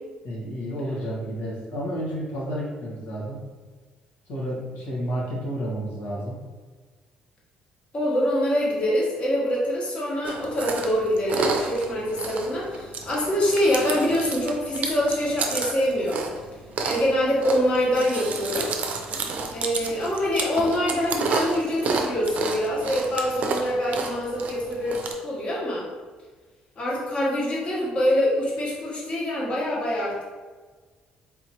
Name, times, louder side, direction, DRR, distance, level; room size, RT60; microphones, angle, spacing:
voice 1, 0.2-3.4 4.3-6.4, equal, 85° left, -5 dB, 1.3 m, -31 dB
voice 2, 7.9-16.2 16.8-18.7 19.5-25.8 26.8-30.2, equal, 40° left, -5 dB, 1.3 m, -25 dB
Chewing mastication, 10.2-25.1, right 4 dB, 55° right, 0.5 m, -31 dB
4.1 x 2.8 x 2.9 m, 1.4 s
cardioid pair, 105°, 3 cm